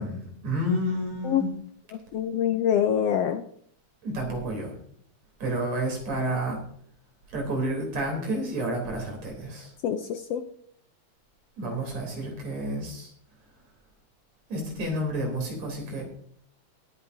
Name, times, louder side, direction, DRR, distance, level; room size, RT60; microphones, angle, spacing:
voice 1, 0.0-1.5 4.0-4.7 5.4-6.6 7.3-9.7 11.6-13.1 14.5-16.0, right 1 dB, 65° right, 1 dB, 4.8 m, -30 dB
voice 2, 2.1-3.4 9.8-10.4, left 9 dB, 75° left, 7 dB, 1.6 m, -25 dB
21.5 x 9.8 x 2.7 m, 0.64 s
omnidirectional pair, 3.3 m